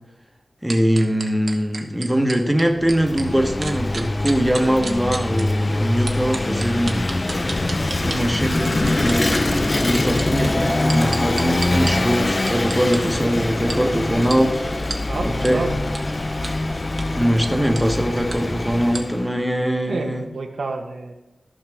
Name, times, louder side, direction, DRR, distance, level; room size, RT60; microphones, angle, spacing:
voice 1, 0.6-7.1 8.0-14.9 15.2-15.7 17.1-20.3, equal, 5° right, 3 dB, 1.0 m, -22 dB
sound 1, 0.7-3.3 3.6-5.4 6.1-8.2 8.6-9.4 9.9-11.9 12.5-13.0 13.7-13.8 14.3-14.4 14.9-15.0 15.4-15.5 15.9-16.0 16.4-16.5 16.9-17.1 17.8-17.9 18.3-18.4 18.9-19.0, right 3 dB, 60° right, 1.0 m, -31 dB
Vehicle / Engine, 2.7-19.3, left 2 dB, 35° left, 0.4 m, -23 dB
voice 2, 15.1-15.8 19.9-21.1, right 3 dB, 80° right, 2 dB, 1.1 m, -29 dB
14.0 x 5.7 x 3.4 m, 0.98 s
wide cardioid pair, 85°, 0 cm